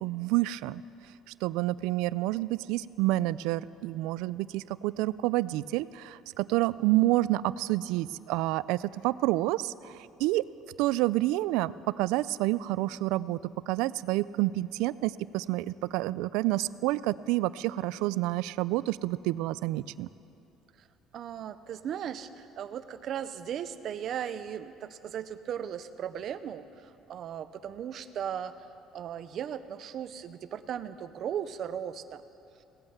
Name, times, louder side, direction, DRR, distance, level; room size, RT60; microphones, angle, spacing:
voice 1, 0.0-0.8 1.4-10.4 10.8-20.1, right 17 dB, 90° right, 18 dB, 0.3 m, -29 dB
voice 2, 21.1-28.5 28.9-32.2, right 9 dB, 40° right, 12 dB, 0.5 m, -37 dB
17.5 x 8.9 x 7.9 m, 2.7 s
cardioid pair, 180°, 0 cm